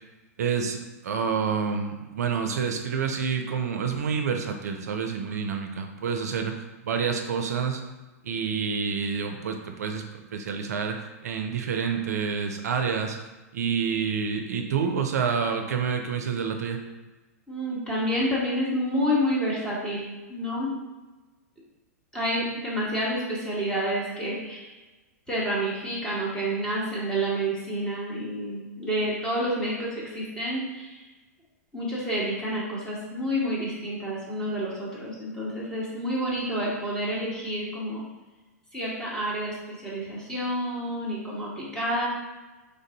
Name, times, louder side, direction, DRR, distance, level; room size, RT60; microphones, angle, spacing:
voice 1, 0.4-7.8 8.2-13.2 13.5-16.8, right 6 dB, 75° right, 5 dB, 0.4 m, -28 dB
voice 2, 17.5-20.0 20.3-20.7 22.1-24.7 25.3-31.0 31.7-38.0 38.7-42.1, equal, 10° left, -6 dB, 1.4 m, -29 dB
3.3 x 2.6 x 3.9 m, 1.2 s
hypercardioid pair, 110°, 9 cm